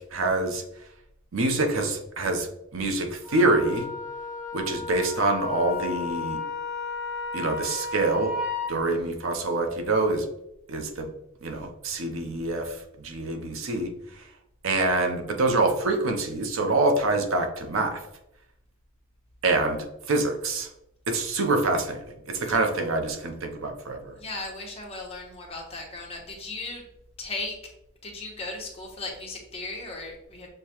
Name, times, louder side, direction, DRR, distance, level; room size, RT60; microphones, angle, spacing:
voice 1, 0.1-0.6 1.3-2.5 2.7-3.9 4.5-6.4 7.3-8.3 8.7-10.3 10.7-11.1 11.4-12.8 13.0-13.9 14.6-18.0 19.4-19.8 20.1-20.7 21.1-22.0 22.3-24.1, right 2 dB, 85° right, 5 dB, 0.7 m, -25 dB
Wind instrument woodwind instrument, 3.2-8.7, left 4 dB, 5° right, 1.2 m, -33 dB
voice 2, 24.2-26.8 27.2-27.6 28.0-30.5, left 2 dB, 30° left, -1 dB, 1.0 m, -36 dB
6.5 x 2.2 x 2.9 m, 0.81 s
head